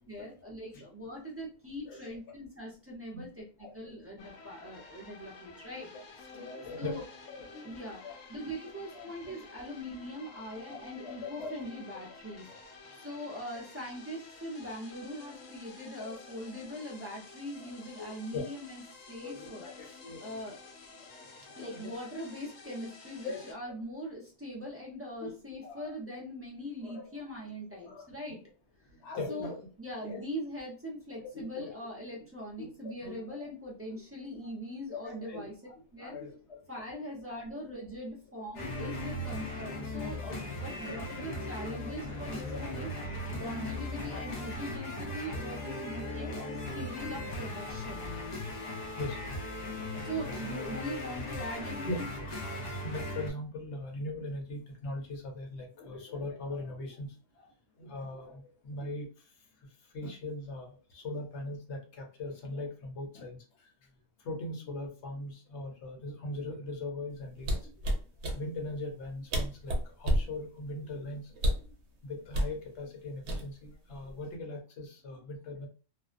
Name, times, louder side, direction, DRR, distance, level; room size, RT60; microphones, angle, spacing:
voice 1, 0.1-3.4 3.7-5.9 6.8-7.0 7.6-8.0 8.3-12.5 13.0-18.8 19.1-20.6 21.6-28.4 29.3-35.5 35.9-36.2 36.7-48.1 50.0-52.1, equal, 15° right, -3 dB, 0.4 m, -41 dB
voice 2, 1.8-2.2 3.1-3.3 3.6-4.0 5.9-6.0 6.3-7.0 7.5-8.5 8.9-9.4 10.3-10.4 10.6-11.7 12.4-12.6 13.5-13.6 17.6-17.7 18.0-18.4 19.2-20.4 21.0-21.9 23.2-23.8 25.2-25.3 25.6-25.9 26.8-28.3 28.9-29.7 30.0-30.2 31.2-31.7 32.6-33.5 33.9-34.0 34.4-34.5 34.9-35.5 36.0-36.6 37.0-37.1 39.2-39.3 40.2-40.3 40.9-41.0 41.7-41.9 42.5-42.6 42.9-43.0 44.1-44.2 45.3-45.4 46.2-46.5 47.0-47.2 47.7-47.8 49.0-49.2 51.9-52.0 52.4-57.5 57.8-59.1 59.9-63.4 64.2-67.7 68.3-71.3 72.0-75.7, left 2 dB, 65° left, 1 dB, 1.0 m, -41 dB
sound 1, 4.2-23.5, left 3 dB, 90° left, 1.0 m, -51 dB
sound 2, 38.5-53.3, left 1 dB, 50° left, 0.5 m, -38 dB
sound 3, 67.4-68.4 69.0-69.1 69.3-70.3 71.4-71.7 72.3-72.6 73.3-73.7 74.1-74.4, equal, 65° right, 0.8 m, -29 dB
2.5 x 2.1 x 2.4 m, 0.37 s
omnidirectional pair, 1.3 m